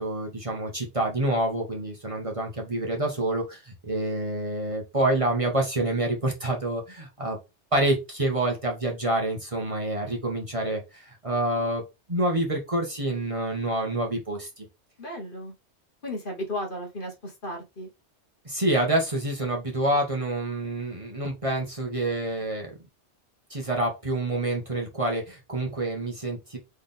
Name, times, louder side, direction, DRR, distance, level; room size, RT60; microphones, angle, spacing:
voice 1, 0.0-7.4 7.7-11.8 12.1-14.6 18.4-22.8 23.5-26.6, right 1 dB, 30° right, 1 dB, 1.4 m, -27 dB
voice 2, 15.0-15.5 16.0-17.9, left 1 dB, 50° left, 1 dB, 1.6 m, -34 dB
4.2 x 3.6 x 3.5 m, 0.24 s
omnidirectional pair, 1.2 m